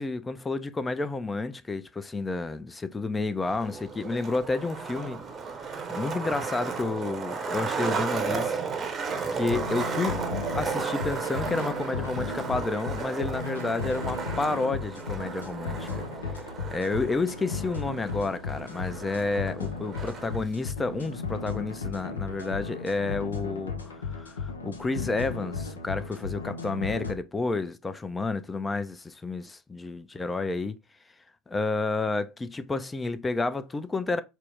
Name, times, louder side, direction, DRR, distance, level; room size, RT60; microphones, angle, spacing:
voice 1, 0.0-5.2 5.9-8.6 9.3-10.2 10.6-30.8 31.5-34.2, left 3 dB, 20° left, 0.4 m, -30 dB
Skateboard, 3.4-20.4, right 5 dB, 30° right, 0.7 m, -34 dB
sound 1, 9.5-27.1, left 5 dB, 85° left, 0.5 m, -35 dB
4.4 x 2.0 x 3.3 m
figure-of-eight pair, 70°, 0 cm